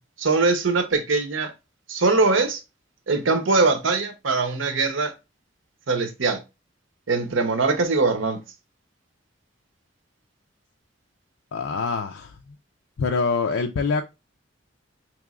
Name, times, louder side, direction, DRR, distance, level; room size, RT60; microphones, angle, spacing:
voice 1, 0.2-1.5 1.9-2.6 3.1-5.1 5.9-6.4 7.1-8.4, right 3 dB, 80° right, 0.8 m, -22 dB
voice 2, 11.5-12.4 13.0-14.0, left 4 dB, 85° left, 0.4 m, -25 dB
4.7 x 3.0 x 2.4 m
head